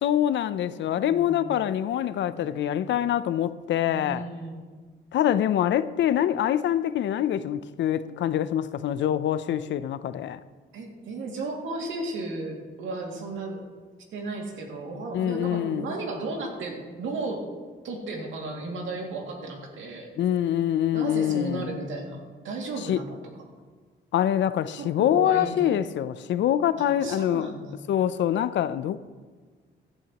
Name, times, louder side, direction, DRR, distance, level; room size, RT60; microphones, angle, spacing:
voice 1, 0.0-4.2 5.1-10.4 15.1-15.9 20.2-21.7 22.9-23.0 24.1-27.5 27.9-29.0, left 11 dB, 65° left, 0.5 m, -25 dB
voice 2, 1.0-1.5 2.3-2.7 3.8-4.6 10.7-13.7 14.1-17.4 17.8-20.1 20.9-23.2 24.8-25.7 26.8-27.7, right 2 dB, 80° right, 2.3 m, -34 dB
15.5 x 11.5 x 3.0 m
cardioid pair, 90°, 20 cm